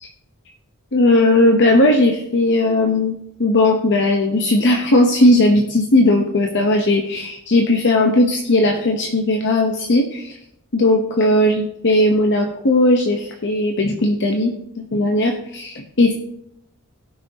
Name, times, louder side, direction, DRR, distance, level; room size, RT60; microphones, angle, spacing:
voice 1, 0.9-3.1 3.4-10.4 10.7-14.5 14.9-16.1, left 1 dB, 55° left, 2 dB, 0.9 m, -17 dB
18.0 x 6.1 x 2.8 m, 0.77 s
head